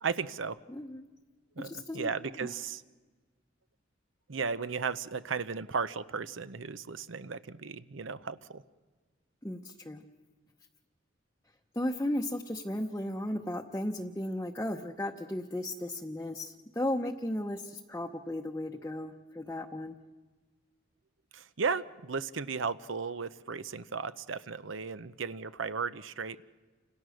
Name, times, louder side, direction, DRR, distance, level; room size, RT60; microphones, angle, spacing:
voice 1, 0.0-0.6 1.6-2.8 4.3-8.6 21.3-26.4, right 5 dB, 80° right, 14 dB, 0.8 m, -35 dB
voice 2, 0.7-1.0 1.6-2.1 2.4-2.5 9.4-10.0 11.7-20.0, left 1 dB, 15° left, 1 dB, 0.8 m, -35 dB
29.5 x 26.5 x 6.4 m, 1.3 s
head